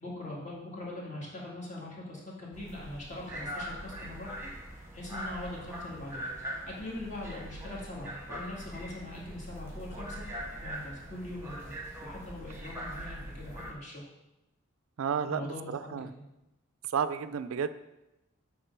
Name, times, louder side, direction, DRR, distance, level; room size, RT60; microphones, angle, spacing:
voice 1, 0.0-4.5 4.9-6.3 6.7-10.2 10.6-11.7 12.0-14.0 15.2-16.1, left 1 dB, 35° left, -4 dB, 2.0 m, -42 dB
sound 1, 2.5-13.7, equal, 10° right, 1.1 m, -42 dB
voice 2, 15.0-16.1 16.9-17.7, right 7 dB, 75° right, 12 dB, 0.4 m, -32 dB
8.1 x 3.6 x 5.9 m, 0.94 s
head